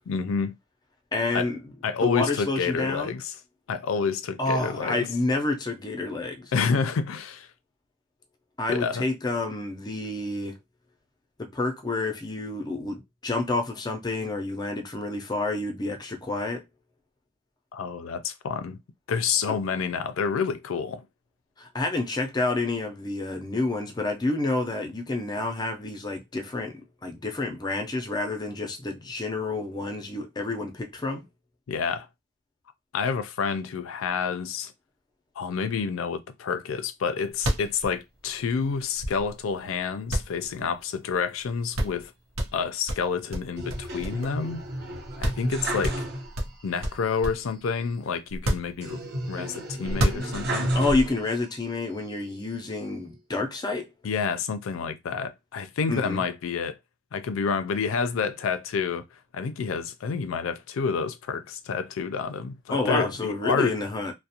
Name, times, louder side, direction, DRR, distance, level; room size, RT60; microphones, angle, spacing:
voice 1, 0.1-0.5 1.3-1.5 1.8-3.3 3.7-5.1 6.5-7.5 8.7-9.0 17.7-18.8 19.1-21.0 31.7-32.1 32.9-34.7 35.4-42.1 42.5-44.6 45.2-46.0 46.6-49.0 49.3-50.7 54.0-56.8 57.1-59.0 59.3-63.7, left 5 dB, 80° left, 0.4 m, -29 dB
voice 2, 1.1-1.6 2.0-3.2 4.4-6.5 8.6-10.6 11.4-16.6 19.5-19.6 21.6-26.7 27.0-31.2 50.7-53.9 55.9-56.2 62.7-64.1, left 2 dB, 20° left, 0.5 m, -29 dB
sound 1, 37.0-37.1 37.3-39.5 40.1-41.1 41.4-41.5 41.7-42.1 42.4-44.5 44.8-44.9 45.2-45.5 45.8-47.5 48.3-49.3 49.8-50.7, equal, 90° right, 0.7 m, -30 dB
sound 2, 43.6-46.6 46.9-47.0 48.8-51.5 52.1-52.9, right 1 dB, 55° right, 0.7 m, -32 dB
2.4 x 2.0 x 2.7 m
head